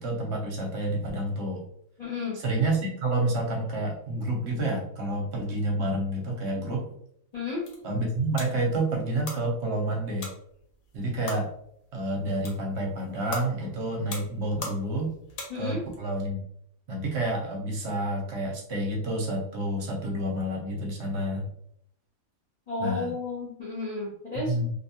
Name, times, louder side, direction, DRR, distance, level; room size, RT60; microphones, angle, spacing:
voice 1, 0.0-1.7 2.3-6.9 7.8-10.3 10.9-11.5 11.9-15.1 15.6-16.4 16.9-21.5 22.8-23.1 24.4-24.7, right 1 dB, 60° right, 0 dB, 0.9 m, -29 dB
voice 2, 2.0-2.4 7.3-7.6 15.5-15.8 22.7-24.6, left 3 dB, 50° left, -6 dB, 0.4 m, -32 dB
sound 1, 7.3-16.0, left 2 dB, 80° left, 1.2 m, -43 dB
2.6 x 2.2 x 2.7 m, 0.70 s
omnidirectional pair, 1.4 m